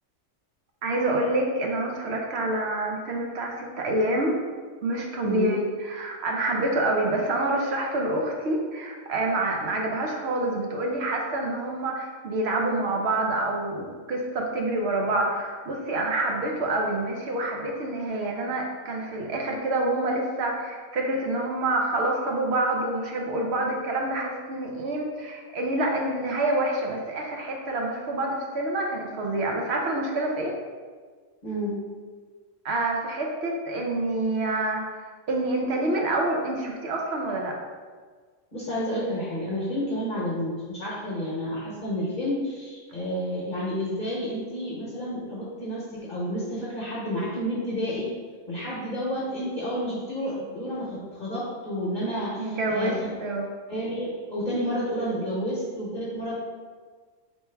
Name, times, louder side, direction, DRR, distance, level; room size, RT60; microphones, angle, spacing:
voice 1, 0.8-4.4 4.8-30.5 32.6-37.6 52.4-53.5, right 2 dB, 60° right, 0 dB, 0.9 m, -27 dB
voice 2, 5.2-5.5 31.4-31.8 38.5-48.1 48.5-52.9 53.7-56.3, equal, 40° left, -7 dB, 1.0 m, -30 dB
4.5 x 3.1 x 3.3 m, 1.5 s
omnidirectional pair, 1.3 m